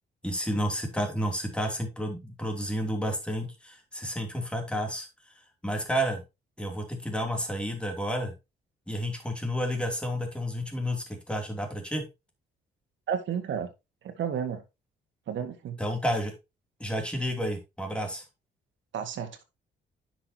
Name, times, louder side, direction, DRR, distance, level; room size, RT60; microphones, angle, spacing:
voice 1, 0.2-5.3 5.6-6.2 6.6-8.3 8.9-12.1 15.8-16.3 16.8-18.2, equal, 5° left, 2.9 m, -31 dB
voice 2, 13.1-13.7 14.0-14.6 15.3-15.8 18.9-19.4, right 8 dB, 70° right, 1.7 m, -32 dB
9.8 x 6.0 x 2.9 m
cardioid pair, 90°, 20 cm